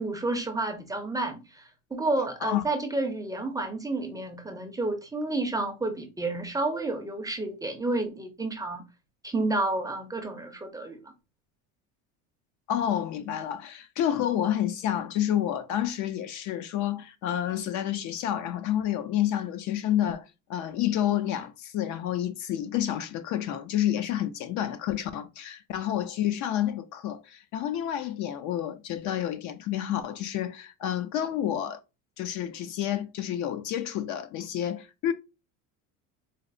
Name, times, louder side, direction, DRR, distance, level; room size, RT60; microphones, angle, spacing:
voice 1, 0.0-8.8 9.2-11.0, right 2 dB, 10° right, 0.5 m, -30 dB
voice 2, 12.7-20.2 20.5-31.8 32.2-35.1, left 11 dB, 50° left, 0.4 m, -29 dB
4.0 x 2.0 x 2.4 m
supercardioid pair, 115°, 37 cm